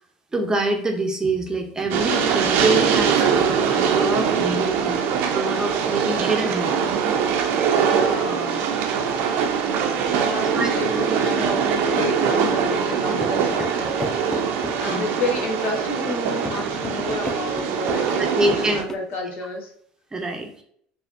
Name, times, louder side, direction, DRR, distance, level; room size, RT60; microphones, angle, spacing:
voice 1, 0.3-5.0 5.3-6.8 7.6-7.7 10.4-11.0 14.9-15.2 18.2-18.8 20.1-20.6, right 2 dB, 15° right, 3 dB, 0.7 m, -25 dB
Train, 1.9-18.8, right 7 dB, 65° right, 0.5 m, -22 dB
voice 2, 7.9-8.8 10.1-14.0 14.8-19.7, left 3 dB, 60° left, 2 dB, 1.0 m, -30 dB
sound 1, 12.2-19.0, left 2 dB, 15° left, 0.5 m, -35 dB
4.2 x 2.8 x 2.6 m, 0.65 s
supercardioid pair, 85°, 4 cm